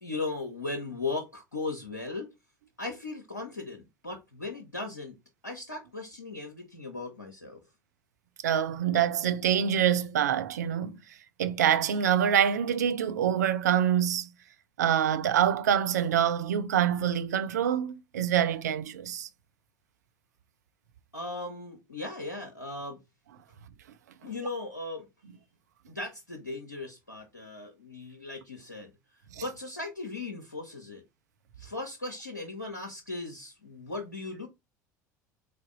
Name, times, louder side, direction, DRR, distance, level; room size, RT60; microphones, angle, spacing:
voice 1, 0.0-2.3 2.8-5.2 5.4-7.6 21.1-23.0 24.2-25.1 25.9-28.9 29.4-31.0 31.6-34.5, left 3 dB, 85° left, 0.8 m, -37 dB
voice 2, 8.4-11.0 11.4-14.3 14.8-19.3, right 9 dB, 70° right, 0.5 m, -25 dB
3.8 x 3.4 x 3.8 m
figure-of-eight pair, 70°, 10 cm